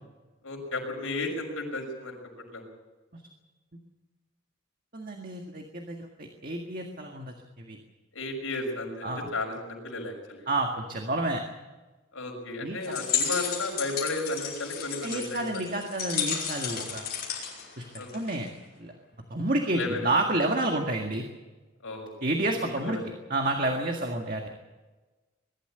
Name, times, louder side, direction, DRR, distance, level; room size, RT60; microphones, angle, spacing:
voice 1, 0.4-2.2 2.5-2.7 8.1-10.5 12.1-15.6 18.0-18.1 19.7-20.1 21.8-22.1 22.5-23.0, left 2 dB, 85° left, 2 dB, 6.2 m, -34 dB
voice 2, 4.9-7.8 9.0-9.3 10.5-11.4 12.6-13.0 15.0-17.1 17.8-17.9 18.1-18.5 18.8-18.9 19.3-21.3 22.2-23.0 23.3-24.5, right 2 dB, 40° right, 2 dB, 1.9 m, -29 dB
sound 1, 12.8-18.5, left 7 dB, 50° left, 5.8 m, -33 dB
22.0 x 13.0 x 9.9 m, 1.2 s
head